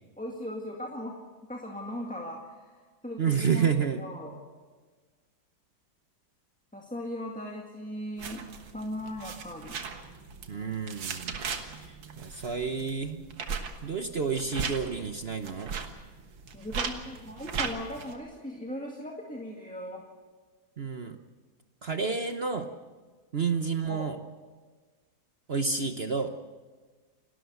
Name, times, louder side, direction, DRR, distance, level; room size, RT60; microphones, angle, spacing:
voice 1, 0.2-3.7 4.0-4.4 6.7-8.5 8.7-9.8 16.5-20.1 23.8-24.1, equal, 5° left, -1 dB, 1.8 m, -38 dB
voice 2, 3.2-4.0 10.5-11.4 11.7-13.3 13.8-15.7 20.8-21.2 21.8-22.7 23.3-24.2 25.5-26.3, right 5 dB, 45° right, 7 dB, 0.8 m, -30 dB
sound 1, 8.2-18.2, right 5 dB, 85° right, 2.3 m, -38 dB
29.0 x 13.0 x 8.1 m, 1.4 s
omnidirectional pair, 2.1 m